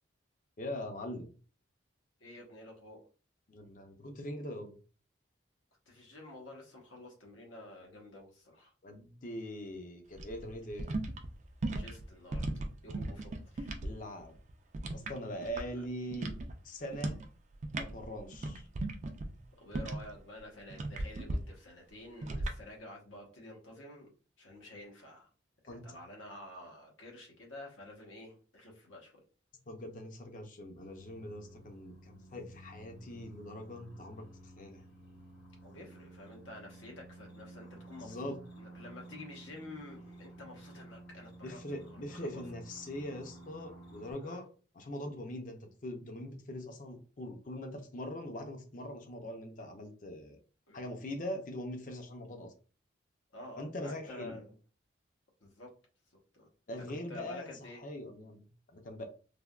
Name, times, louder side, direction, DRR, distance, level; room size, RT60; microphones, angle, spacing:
voice 1, 0.6-1.3 3.5-4.8 8.8-10.9 13.8-14.4 14.9-16.3 16.6-17.2 17.8-18.7 25.7-25.8 29.7-34.2 34.6-34.8 38.0-38.4 41.4-44.5 44.7-50.4 50.7-52.5 53.6-54.4 56.7-57.5 57.8-59.0, left 1 dB, 40° left, 5 dB, 0.5 m, -42 dB
voice 2, 2.2-3.1 5.9-8.7 11.7-13.8 19.6-24.1 24.4-25.3 25.8-29.2 35.6-42.4 44.2-44.4 50.7-50.8 53.3-54.6 55.4-55.7 56.3-56.5 56.9-57.8, left 1 dB, 85° left, 0 dB, 1.0 m, -50 dB
sound 1, 10.1-13.9 14.2-16.5 16.9-17.3 17.5-20.2 20.7-21.4 22.2-22.6, right 2 dB, 35° right, 0.3 m, -37 dB
sound 2, 30.8-44.1, right 1 dB, 65° left, 1.2 m, -53 dB
3.3 x 2.1 x 2.3 m, 0.37 s
head